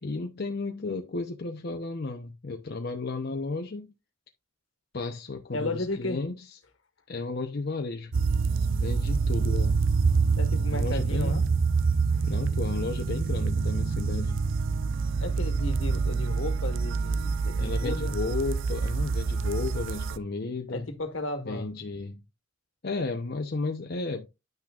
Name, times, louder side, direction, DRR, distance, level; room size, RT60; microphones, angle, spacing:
voice 1, 0.0-3.9 4.9-6.6 7.1-8.1 8.8-9.9 10.7-11.4 12.2-14.4 17.6-20.9 21.4-22.2 22.8-24.3, left 3 dB, 55° left, 0.8 m, -33 dB
voice 2, 5.5-6.2 10.4-11.4 12.1-12.3 15.2-18.1 20.7-21.7, left 2 dB, 70° left, 1.6 m, -34 dB
sound 1, 8.1-20.2, right 4 dB, 70° right, 0.5 m, -26 dB
10.5 x 6.0 x 2.4 m
head